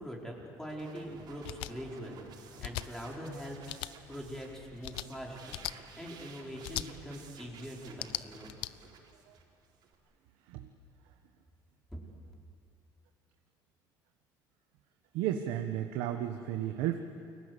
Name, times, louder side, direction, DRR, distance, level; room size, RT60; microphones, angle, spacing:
voice 1, 0.0-2.3 2.6-3.7 4.1-5.6 6.0-8.5, equal, 5° left, -2 dB, 5.2 m, -43 dB
sound 1, 0.7-9.9, right 5 dB, 60° right, 4.5 m, -53 dB
sound 2, 1.4-1.7 2.6-2.9 3.7-3.9 4.8-5.1 5.5-5.7 6.6-6.9 7.9-8.7, left 17 dB, 80° left, 0.7 m, -38 dB
voice 2, 15.1-17.0, right 11 dB, 85° right, 5 dB, 1.4 m, -33 dB
30.0 x 23.0 x 8.4 m, 2.4 s
cardioid pair, 130°, 8 cm